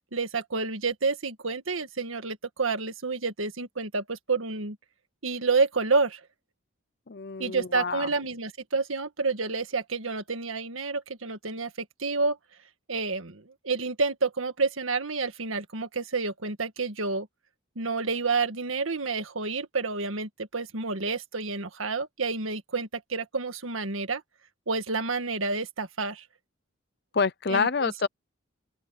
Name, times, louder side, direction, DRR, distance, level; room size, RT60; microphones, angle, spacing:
voice 1, 0.1-4.8 5.2-6.2 7.4-12.4 12.9-17.3 17.8-24.2 24.7-26.3 27.5-28.1, right 4 dB, 90° right, 1.8 m, -29 dB
voice 2, 7.1-8.1 27.1-28.1, left 5 dB, 55° left, 0.6 m, -27 dB
open air
head